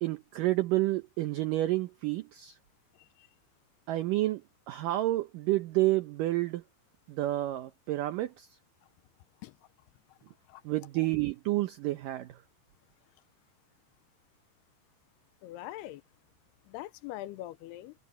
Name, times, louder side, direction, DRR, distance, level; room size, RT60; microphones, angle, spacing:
voice 1, 0.0-2.6 3.9-4.4 4.7-6.6 7.1-8.5 10.7-12.3, right 17 dB, 85° right, 1.9 m, -29 dB
voice 2, 15.4-16.0 16.7-17.9, left 15 dB, 80° left, 2.6 m, -42 dB
omnidirectional pair, 4.9 m